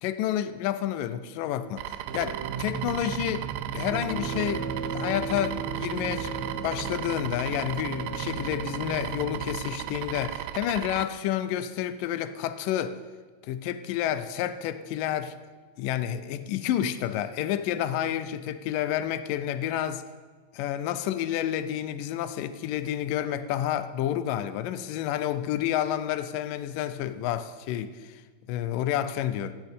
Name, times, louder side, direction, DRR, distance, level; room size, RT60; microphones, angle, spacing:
voice 1, 0.0-3.4 3.7-13.0 13.4-15.4 15.8-20.0 20.5-28.2 28.5-29.5, left 11 dB, 80° left, 12 dB, 2.0 m, -30 dB
sound 1, 1.8-11.1, right 13 dB, 90° right, 2.7 m, -36 dB
Space Pad, 2.1-10.8, right 6 dB, 65° right, 3.0 m, -38 dB
sound 2, 3.9-10.2, right 4 dB, 60° left, 2.9 m, -38 dB
16.0 x 6.6 x 8.3 m, 1.4 s
omnidirectional pair, 4.6 m